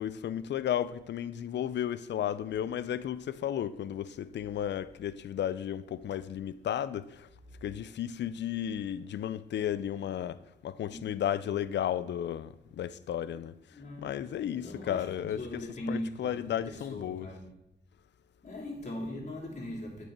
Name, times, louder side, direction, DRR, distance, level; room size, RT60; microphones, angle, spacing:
voice 1, 0.0-7.3 7.6-17.3, left 10 dB, 70° left, 0.4 m, -34 dB
voice 2, 13.7-14.1 14.5-15.1 15.4-17.5 18.4-20.0, left 1 dB, 40° left, 2.3 m, -39 dB
8.9 x 4.5 x 5.9 m
cardioid pair, 75°, 19 cm